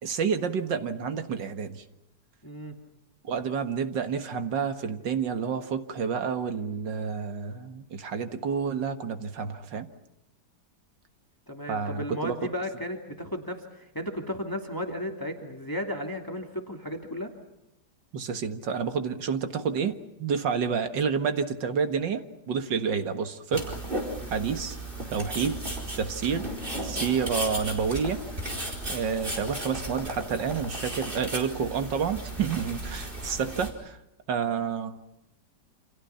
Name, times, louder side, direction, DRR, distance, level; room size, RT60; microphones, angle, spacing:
voice 1, 0.0-1.8 3.2-9.9 11.7-12.3 18.1-23.8 24.3-24.8 25.1-25.6 26.0-26.5 26.8-28.2 28.9-34.0 34.3-35.0, right 6 dB, 80° right, 8 dB, 2.3 m, -29 dB
voice 2, 2.4-2.7 11.5-17.3, left 1 dB, 10° left, 3 dB, 2.6 m, -34 dB
sound 1, 23.5-33.7, right 1 dB, 30° right, 4.7 m, -35 dB
29.0 x 27.5 x 5.8 m, 0.85 s
omnidirectional pair, 1.9 m